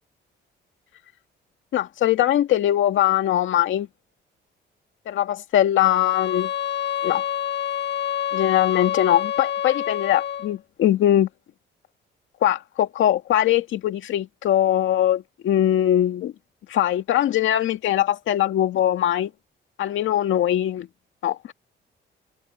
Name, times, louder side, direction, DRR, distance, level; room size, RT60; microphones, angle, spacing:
voice 1, 1.7-3.9 5.1-6.5 7.0-7.2 8.3-11.3 12.4-16.3 16.7-19.3 19.8-20.9 21.2-21.5, left 12 dB, 75° left, 2.1 m, -21 dB
sound 1, 5.8-10.5, left 10 dB, 60° left, 1.3 m, -27 dB
cardioid pair, 90°, 20 cm